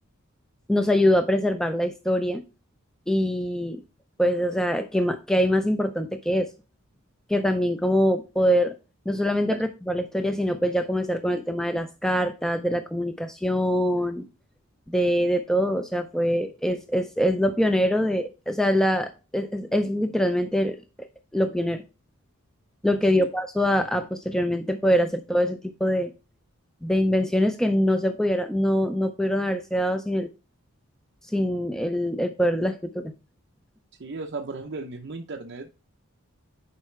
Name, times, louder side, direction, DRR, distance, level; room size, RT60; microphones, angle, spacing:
voice 1, 0.7-2.4 3.1-3.8 4.2-6.5 7.3-8.7 9.1-9.6 9.9-14.3 14.9-20.8 21.3-21.8 22.8-26.1 26.8-30.3 31.3-33.1, equal, ahead, 7 dB, 0.4 m, -24 dB
voice 2, 34.0-35.7, right 3 dB, 50° right, 1 dB, 0.6 m, -35 dB
9.8 x 4.7 x 3.2 m, 0.31 s
head